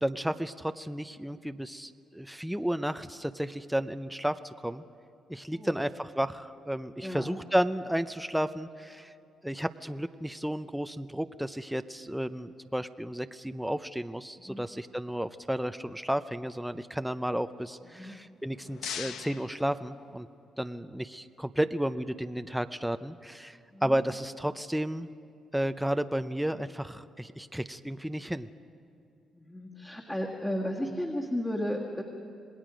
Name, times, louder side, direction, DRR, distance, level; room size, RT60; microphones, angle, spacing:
voice 1, 0.0-4.8 5.3-9.1 9.4-20.3 20.6-25.1 25.5-28.5, right 1 dB, 5° right, 10 dB, 0.6 m, -32 dB
voice 2, 5.5-5.8 7.0-7.3 14.4-14.7 17.8-18.2 23.7-24.0 29.3-32.0, equal, 15° left, -3 dB, 1.9 m, -34 dB
sound 1, 18.3-20.5, left 8 dB, 80° left, 0.8 m, -42 dB
27.0 x 19.0 x 5.1 m, 2.6 s
cardioid pair, 90°, 0 cm